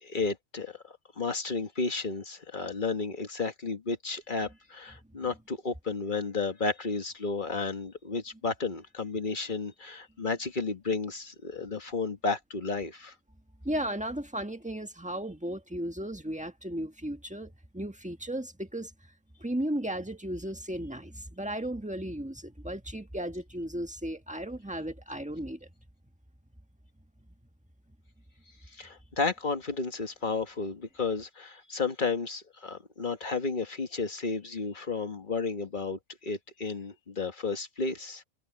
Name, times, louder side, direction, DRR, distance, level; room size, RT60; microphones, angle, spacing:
voice 1, 0.0-13.1 28.7-38.2, left 4 dB, 40° left, 1.8 m, -32 dB
voice 2, 13.6-18.9 19.4-25.7, right 1 dB, 5° right, 1.4 m, -35 dB
omnidirectional pair, 1.3 m